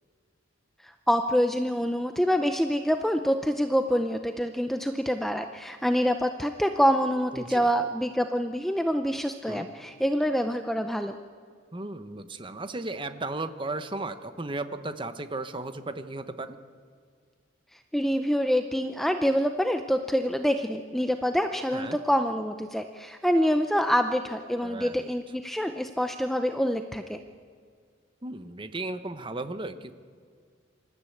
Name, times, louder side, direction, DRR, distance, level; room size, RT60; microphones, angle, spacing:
voice 1, 1.1-11.1 17.9-27.2, equal, ahead, 6 dB, 0.6 m, -26 dB
voice 2, 7.3-7.7 9.5-9.7 11.7-16.6 21.7-22.0 24.6-25.1 28.2-29.9, right 2 dB, 25° right, 10 dB, 0.9 m, -35 dB
26.5 x 13.5 x 8.5 m, 2.1 s
head